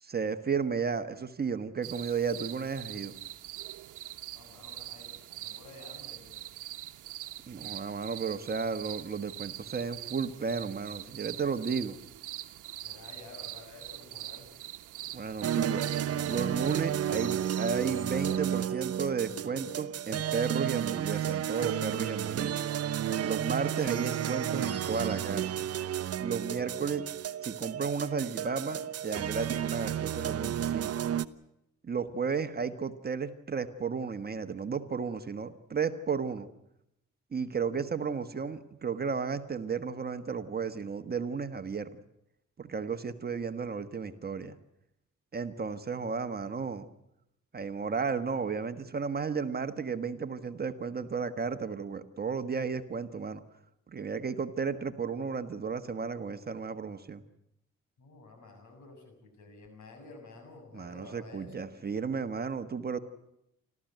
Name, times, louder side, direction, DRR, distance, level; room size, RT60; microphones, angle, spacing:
voice 1, 0.0-3.1 7.5-12.0 15.1-15.9 16.3-22.6 23.2-25.7 26.2-27.0 27.4-30.9 31.8-36.5 37.3-41.9 42.6-44.6 45.3-46.9 47.5-53.4 53.9-57.2 60.7-63.0, right 5 dB, 30° right, 9 dB, 1.4 m, -33 dB
sound 1, 1.8-18.4, right 14 dB, 85° right, 1.1 m, -44 dB
voice 2, 4.3-6.4 12.8-14.5 58.0-62.0, left 3 dB, 75° left, 5 dB, 7.2 m, -51 dB
sound 2, 15.4-31.3, right 10 dB, 55° right, 0.9 m, -32 dB
29.5 x 13.5 x 9.2 m, 0.82 s
cardioid pair, 90°, 30 cm